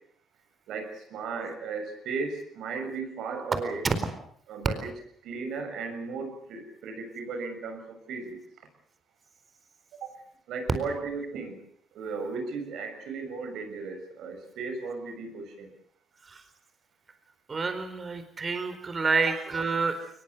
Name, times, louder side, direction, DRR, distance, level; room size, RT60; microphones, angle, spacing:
voice 1, 0.7-3.8 4.5-4.9 5.2-8.4 10.0-10.2 10.5-11.6 11.9-15.7 19.3-19.4, right 4 dB, 80° right, 6 dB, 6.7 m, -35 dB
voice 2, 17.5-20.1, right 4 dB, 35° right, 9 dB, 4.3 m, -28 dB
22.5 x 20.5 x 8.1 m, 0.63 s
cardioid pair, 90°, 0 cm